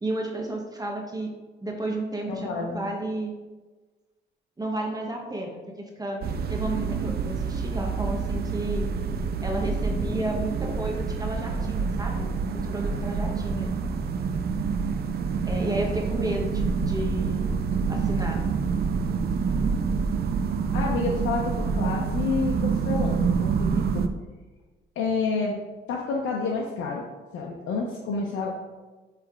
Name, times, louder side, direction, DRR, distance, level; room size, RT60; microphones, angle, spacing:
voice 1, 0.0-1.3 1.6-3.3 4.6-6.2 6.5-8.9 9.4-13.7 15.5-17.4 17.9-18.4, right 1 dB, 20° right, 1 dB, 1.0 m, -32 dB
voice 2, 2.3-2.9 20.7-24.0 25.0-25.6 25.9-27.1 27.3-28.5, left 4 dB, 85° left, -1 dB, 0.8 m, -29 dB
sound 1, 6.2-24.1, right 5 dB, 50° right, 0.5 m, -27 dB
7.9 x 3.5 x 3.6 m, 1.3 s
cardioid pair, 90°, 20 cm